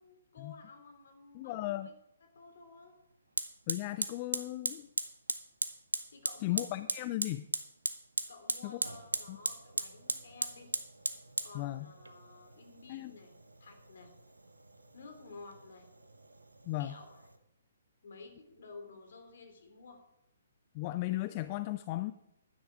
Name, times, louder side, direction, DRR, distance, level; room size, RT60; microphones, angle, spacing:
voice 1, 0.0-1.9 2.2-2.9 6.1-6.8 8.3-10.7 11.4-13.3 13.6-14.1 14.9-15.9 16.8-17.3 18.0-20.0, left 4 dB, 55° left, 5 dB, 2.9 m, -53 dB
voice 2, 1.3-1.9 3.7-4.9 6.4-7.5 8.6-8.8 9.3-9.4 11.5-11.9 12.9-13.1 16.7-16.9 20.7-22.1, left 17 dB, 30° left, 13 dB, 0.4 m, -36 dB
Fire, 2.4-2.5 3.4-17.4, right 2 dB, 80° right, 1.0 m, -39 dB
11.5 x 9.8 x 4.9 m, 0.84 s
figure-of-eight pair, 130°, 0 cm